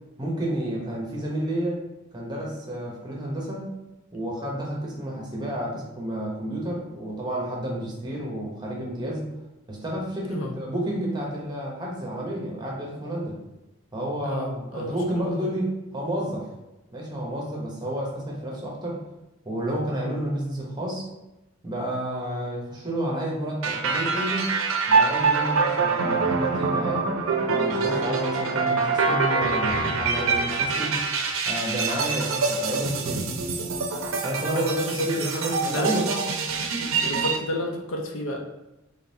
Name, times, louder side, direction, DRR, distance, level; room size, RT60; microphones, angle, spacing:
voice 1, 0.2-1.8 2.1-3.8 4.1-9.2 9.7-13.4 13.9-16.5 16.9-19.0 19.4-21.1 21.6-24.6 24.9-27.1 27.4-31.0 31.5-33.3 34.2-34.7 35.0-36.2, right 1 dB, 20° right, -3 dB, 0.9 m, -30 dB
voice 2, 10.2-10.5 14.2-15.0 15.3-15.5 28.5-28.8 32.3-32.5 34.4-36.0 37.0-38.4, left 1 dB, 70° left, 1 dB, 0.6 m, -31 dB
sound 1, 23.6-37.4, right 4 dB, 80° right, 0.5 m, -25 dB
3.8 x 3.3 x 2.7 m, 0.99 s
head